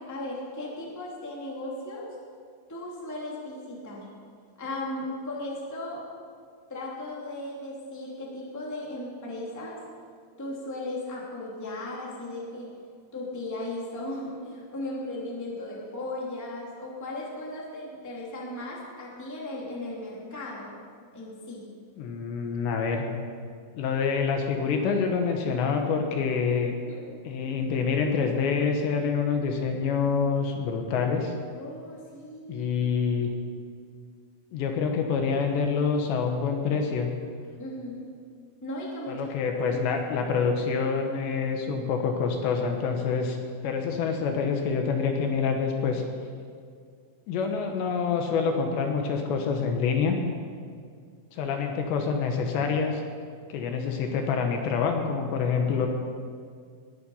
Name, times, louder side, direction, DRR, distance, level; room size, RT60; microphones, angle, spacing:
voice 1, 0.0-2.1 2.7-4.1 4.6-6.0 6.7-9.8 10.4-12.7 13.1-20.7 21.1-21.6 26.8-27.0 31.5-32.7 37.6-38.1 38.6-39.8, left 1 dB, 5° left, -4 dB, 1.7 m, -36 dB
voice 2, 22.0-23.1 23.7-26.7 27.3-31.3 32.5-33.3 34.5-37.1 39.1-43.4 43.6-46.0 47.3-50.2 51.3-53.0 53.5-55.9, left 5 dB, 75° left, 3 dB, 3.2 m, -26 dB
20.0 x 10.5 x 5.6 m, 2.1 s
omnidirectional pair, 5.4 m